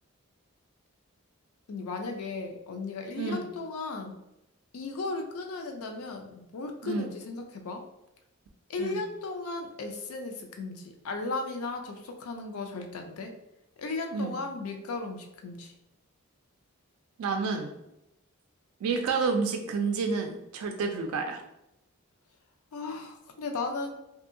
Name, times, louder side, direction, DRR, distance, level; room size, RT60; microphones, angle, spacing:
voice 1, 1.7-4.2 4.7-7.8 8.7-13.3 13.8-15.7 22.7-23.9, left 3 dB, 80° left, 3 dB, 0.4 m, -36 dB
voice 2, 3.2-3.5 6.8-7.1 8.8-9.0 14.1-14.3 17.2-17.7 18.8-21.4, right 4 dB, 85° right, 4 dB, 0.3 m, -29 dB
2.7 x 2.6 x 2.5 m, 0.88 s
head